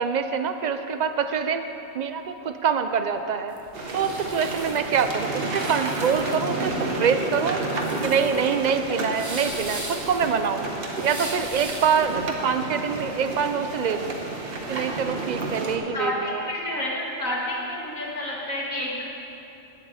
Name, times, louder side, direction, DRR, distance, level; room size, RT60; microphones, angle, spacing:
voice 1, 0.0-1.7 1.9-3.5 3.9-7.6 8.0-10.7 11.0-14.2 14.7-16.5, right 6 dB, 75° right, 8 dB, 0.4 m, -25 dB
sound 1, 3.5-12.2, right 1 dB, 15° right, 0.8 m, -39 dB
sound 2, 3.7-15.8, right 2 dB, 50° right, 1.3 m, -31 dB
voice 2, 15.9-19.0, left 1 dB, 85° left, -4 dB, 2.5 m, -29 dB
9.6 x 8.1 x 7.7 m, 2.9 s
omnidirectional pair, 1.3 m